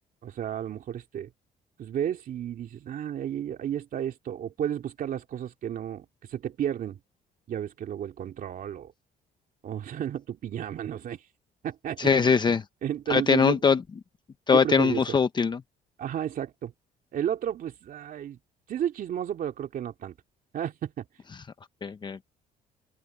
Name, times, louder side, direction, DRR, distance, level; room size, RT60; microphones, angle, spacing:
voice 1, 0.2-1.3 1.8-7.0 7.5-8.9 9.6-11.2 11.6-12.3 12.8-13.6 14.5-15.0 16.0-16.7 17.1-18.4 18.7-20.1 20.5-21.0, right 10 dB, 55° right, 2.8 m, -32 dB
voice 2, 12.0-12.6 13.1-13.8 14.5-15.6 21.8-22.2, left 5 dB, 25° left, 0.7 m, -22 dB
open air
cardioid pair, 110°, 17 cm